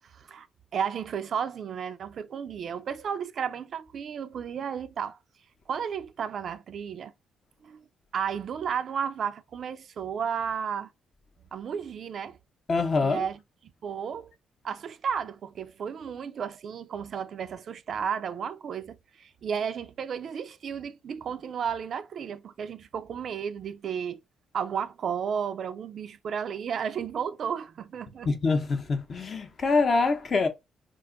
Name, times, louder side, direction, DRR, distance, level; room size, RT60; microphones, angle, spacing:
voice 1, 0.0-0.5 0.7-5.2 5.7-7.1 7.6-7.8 8.1-10.9 11.5-12.4 13.0-13.4 13.8-14.3 14.6-24.2 24.5-28.3, right 7 dB, 60° right, 0.3 m, -33 dB
voice 2, 12.7-13.2 28.3-30.5, left 4 dB, 40° left, 0.7 m, -25 dB
2.4 x 2.3 x 3.7 m
cardioid pair, 90°, 0 cm